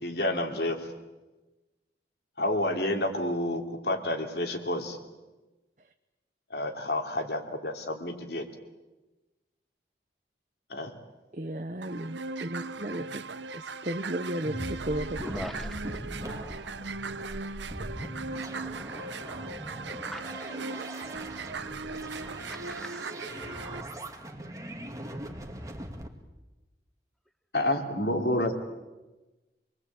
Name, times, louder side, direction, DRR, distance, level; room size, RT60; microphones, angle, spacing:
voice 1, 0.0-0.9 2.4-5.0 6.5-8.4 10.7-10.9 27.5-28.5, left 1 dB, 65° left, 5 dB, 3.0 m, -29 dB
voice 2, 11.3-13.2 13.5-15.3, right 1 dB, 45° right, 6 dB, 0.9 m, -34 dB
sound 1, 11.8-23.8, right 4 dB, 80° right, 1.0 m, -38 dB
sound 2, 14.5-26.1, equal, 20° right, 2.0 m, -40 dB
voice 3, 15.2-15.8 20.1-20.4 22.5-23.0, equal, ahead, 10 dB, 1.3 m, -41 dB
27.5 x 21.5 x 8.6 m, 1.1 s
head